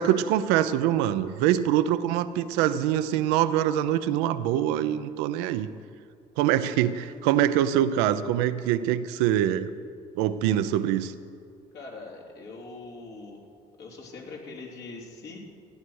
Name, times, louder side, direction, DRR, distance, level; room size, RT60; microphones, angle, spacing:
voice 1, 0.0-5.7 6.4-9.7 10.2-11.1, right 11 dB, 85° right, 12 dB, 0.6 m, -24 dB
voice 2, 11.7-13.4 13.8-15.4, left 3 dB, 70° left, -2 dB, 3.2 m, -42 dB
15.5 x 9.7 x 6.4 m, 2.3 s
hypercardioid pair, 60°, 17 cm